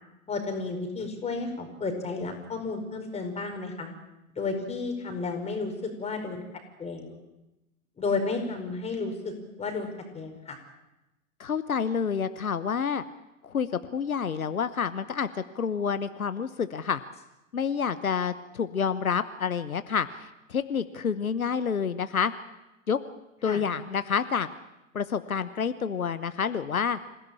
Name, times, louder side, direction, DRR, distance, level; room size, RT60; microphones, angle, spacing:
voice 1, 0.3-3.9 4.4-5.7 6.0-6.4 6.8-7.1 8.0-9.3 9.6-10.6 23.4-23.6, left 3 dB, 15° left, 4 dB, 4.9 m, -32 dB
voice 2, 11.4-13.0 13.4-13.7 13.9-15.3 15.5-17.0 17.5-22.3 22.9-23.0 23.4-24.5 24.9-27.0, left 6 dB, 75° left, 13 dB, 1.1 m, -28 dB
26.5 x 16.5 x 8.8 m, 0.97 s
figure-of-eight pair, 100°, 42 cm